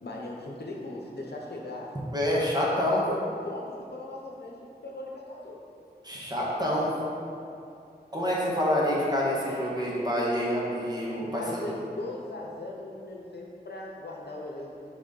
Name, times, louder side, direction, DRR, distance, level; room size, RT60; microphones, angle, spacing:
voice 1, 0.0-2.0 2.3-5.6 11.1-14.7, left 2 dB, 75° left, -2 dB, 0.9 m, -39 dB
voice 2, 2.1-3.0 6.0-6.9 8.1-11.6, left 1 dB, 25° right, -6 dB, 1.5 m, -27 dB
6.2 x 3.6 x 5.3 m, 2.6 s
wide cardioid pair, 65°, 17 cm